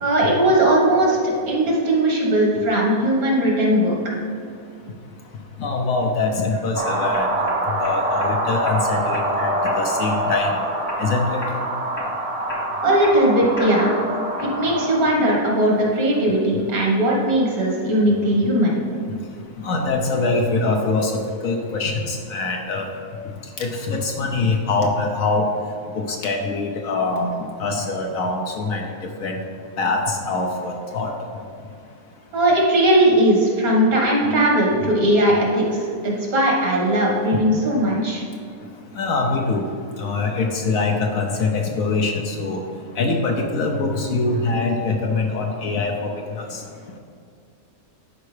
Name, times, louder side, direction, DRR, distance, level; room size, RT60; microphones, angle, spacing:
voice 1, 0.0-4.0 12.8-13.9 14.4-18.8 32.3-35.6 36.0-38.2, right 1 dB, 65° right, -2 dB, 2.0 m, -18 dB
voice 2, 5.6-7.3 7.8-10.5 11.0-11.4 19.6-21.1 21.4-22.9 23.6-25.5 26.2-27.3 27.6-28.8 29.2-29.3 29.8-31.1 36.9-37.2 39.0-39.6 40.0-42.6 43.0-46.1 46.4-46.5, left 3 dB, 65° left, 1 dB, 1.1 m, -23 dB
sound 1, 6.2-6.6 7.1-8.3 8.7-9.3 9.6-10.0 10.3-11.1 11.4-11.7 12.0-14.0 14.4-14.9, left 2 dB, 25° left, 0.6 m, -34 dB
sound 2, 6.7-15.5, right 1 dB, 50° right, 0.4 m, -25 dB
11.0 x 4.6 x 3.3 m, 2.3 s
omnidirectional pair, 1.6 m